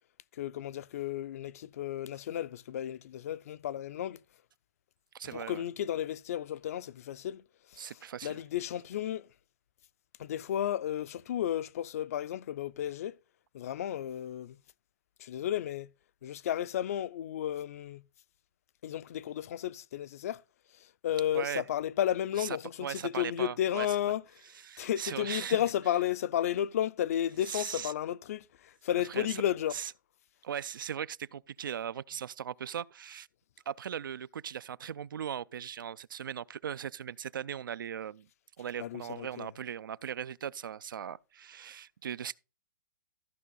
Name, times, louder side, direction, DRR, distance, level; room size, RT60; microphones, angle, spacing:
voice 1, 0.3-4.2 5.3-9.3 10.2-13.2 13.5-14.6 15.2-15.9 16.2-18.0 18.8-20.4 20.7-24.5 24.8-29.8 38.8-39.5, left 11 dB, 45° left, 0.4 m, -33 dB
voice 2, 5.1-5.6 7.8-8.4 21.3-21.6 22.4-22.5 22.8-23.9 24.6-25.6 27.5-27.9 29.2-29.3 29.7-29.9 30.4-33.3 33.7-38.3 38.6-42.3, right 9 dB, 85° right, 0.4 m, -38 dB
14.0 x 5.4 x 4.0 m
hypercardioid pair, 160°, 11 cm